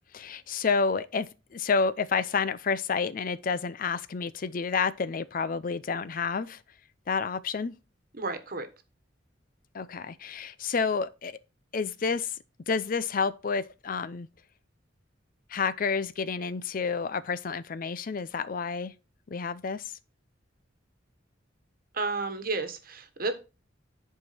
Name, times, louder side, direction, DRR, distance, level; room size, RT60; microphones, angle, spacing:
voice 1, 0.1-1.3 1.5-6.6 7.1-7.7 9.7-11.4 11.7-12.4 12.7-14.3 15.5-18.9 19.3-19.9, left 5 dB, 45° left, 0.5 m, -29 dB
voice 2, 8.1-8.7 21.9-23.3, right 3 dB, 50° right, 1.3 m, -31 dB
10.5 x 4.7 x 4.2 m
head